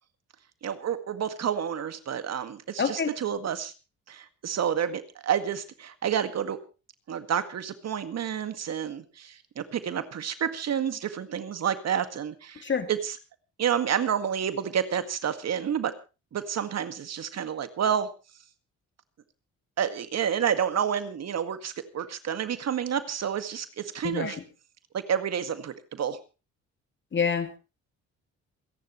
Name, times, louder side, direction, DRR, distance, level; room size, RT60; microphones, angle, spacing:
voice 1, 0.6-3.7 4.1-6.6 7.1-13.2 13.6-15.9 16.3-18.1 19.8-24.4 24.9-26.2, right 8 dB, 60° right, 10 dB, 2.0 m, -29 dB
voice 2, 2.8-3.1 12.6-12.9 24.0-24.4 27.1-27.6, left 6 dB, 40° left, 8 dB, 2.5 m, -27 dB
28.0 x 10.5 x 3.2 m, 0.31 s
cardioid pair, 90°, 30 cm